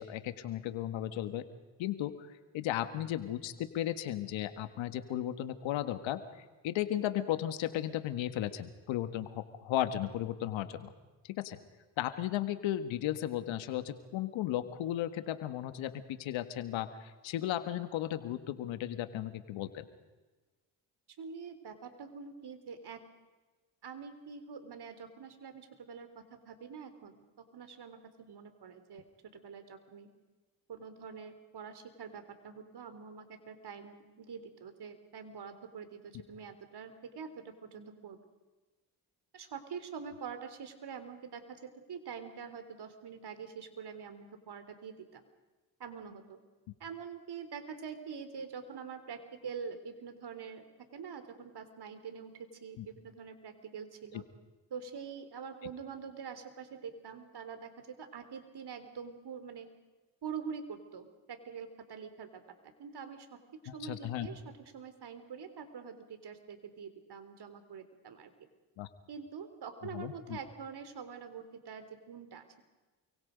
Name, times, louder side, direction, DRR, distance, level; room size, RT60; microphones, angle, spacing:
voice 1, 0.0-1.5 1.8-2.3 2.5-6.2 6.6-10.9 11.2-11.6 12.0-19.9 52.8-52.9 54.1-54.2 63.7-64.3 68.8-68.9 69.9-70.4, left 12 dB, 80° left, 10 dB, 1.7 m, -35 dB
voice 2, 21.2-23.0 23.8-27.2 27.5-29.0 29.3-30.1 30.7-38.2 39.3-45.3 45.8-46.4 46.8-54.2 54.7-59.7 60.2-63.4 63.7-68.3 69.1-72.6, right 6 dB, 55° right, 9 dB, 3.5 m, -45 dB
28.5 x 24.0 x 5.2 m, 1.2 s
supercardioid pair, 55°, 46 cm